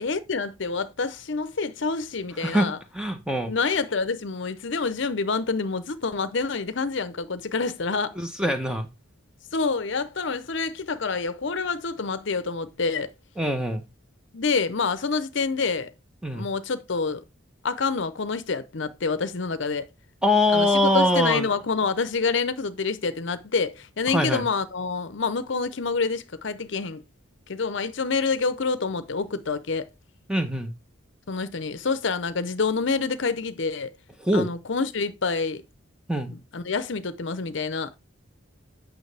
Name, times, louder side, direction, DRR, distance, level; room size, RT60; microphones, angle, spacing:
voice 1, 0.0-2.8 3.5-8.2 9.5-13.1 14.3-15.9 16.3-17.2 17.6-19.9 20.5-27.0 27.5-29.9 31.3-33.9 34.3-35.6 36.3-38.0, left 4 dB, 60° left, 0.7 m, -27 dB
voice 2, 2.9-3.5 8.2-8.9 13.4-13.8 16.2-16.5 20.2-21.5 24.1-24.4 30.3-30.7 34.2-34.5 36.1-36.3, left 1 dB, 5° right, 1.0 m, -23 dB
9.0 x 6.3 x 3.4 m
head